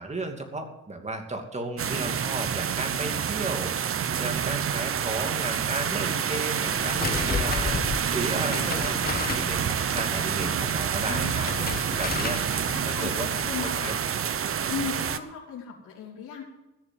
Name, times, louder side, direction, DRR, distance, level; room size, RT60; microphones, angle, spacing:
voice 1, 0.0-11.5 12.0-12.4 12.9-13.3 13.6-13.9, right 2 dB, 20° right, 4 dB, 2.6 m, -34 dB
sound 1, 1.8-15.2, right 8 dB, 45° right, 0.9 m, -28 dB
sound 2, 6.7-14.0, left 5 dB, 30° left, 1.3 m, -34 dB
voice 2, 11.1-11.4 11.9-12.3 12.7-14.0 14.7-16.4, left 7 dB, 75° left, -6 dB, 3.6 m, -37 dB
16.0 x 6.9 x 7.7 m, 1.0 s
cardioid pair, 90°, 30 cm